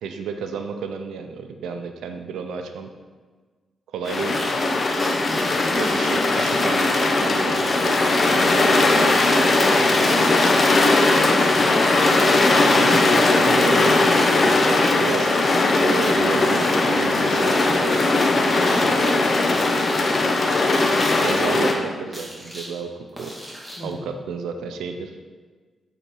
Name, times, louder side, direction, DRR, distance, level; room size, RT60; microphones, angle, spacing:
voice 1, 0.0-2.9 3.9-4.4 5.7-8.0 8.3-10.3 12.7-14.5 15.0-15.3 15.8-18.0 18.8-19.2 19.5-19.8 21.1-22.9 23.2-23.4 23.8-25.2, right 5 dB, 85° right, 6 dB, 0.5 m, -32 dB
sound 1, 4.1-21.7, left 2 dB, 55° left, 0.9 m, -19 dB
sound 2, 4.3-4.5 5.0-7.0 7.5-9.0 9.9-13.2 13.7-14.8 15.0-16.8 17.3-18.3 18.6-19.1 19.5-20.0 20.7-21.4 22.1-22.7 23.2-23.9, equal, 5° right, 2.2 m, -36 dB
voice 2, 5.3-5.9 11.0-11.7 18.9-19.2 23.8-24.1, left 2 dB, 30° left, 2 dB, 1.3 m, -38 dB
7.8 x 4.0 x 4.6 m, 1.4 s
supercardioid pair, 55°, 0 cm